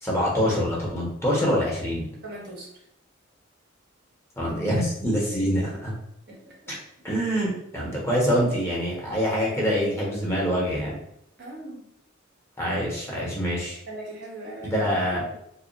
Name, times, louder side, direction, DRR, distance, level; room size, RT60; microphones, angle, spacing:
voice 1, 0.0-2.1 4.4-5.9 6.7-6.8 7.0-10.9 12.6-13.8 14.6-15.2, equal, 15° left, -4 dB, 1.2 m, -25 dB
voice 2, 2.2-2.7 6.3-6.7 7.3-7.4 11.4-11.8 13.9-15.4, right 1 dB, 55° right, -2 dB, 1.3 m, -40 dB
4.8 x 2.1 x 3.2 m, 0.75 s
head